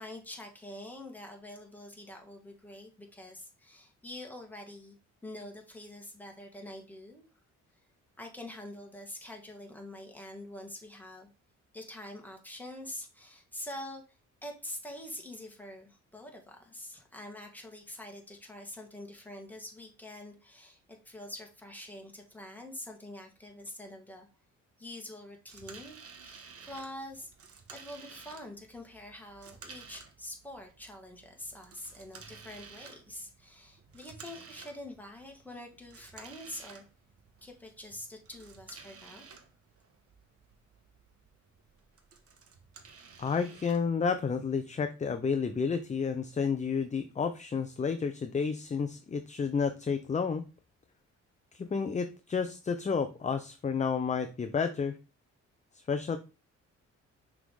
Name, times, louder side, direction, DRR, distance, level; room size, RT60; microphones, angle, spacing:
voice 1, 0.0-5.0 5.2-7.2 8.2-11.3 11.7-24.3 24.8-27.3 27.7-36.8 37.4-39.3, left 1 dB, 5° left, 1 dB, 2.0 m, -45 dB
sound 1, 25.5-44.6, right 5 dB, 50° right, 1.3 m, -53 dB
voice 2, 43.2-50.4 51.5-55.0 55.7-56.2, left 5 dB, 25° left, 9 dB, 0.6 m, -31 dB
5.9 x 3.6 x 4.8 m, 0.31 s
cardioid pair, 90°, 30 cm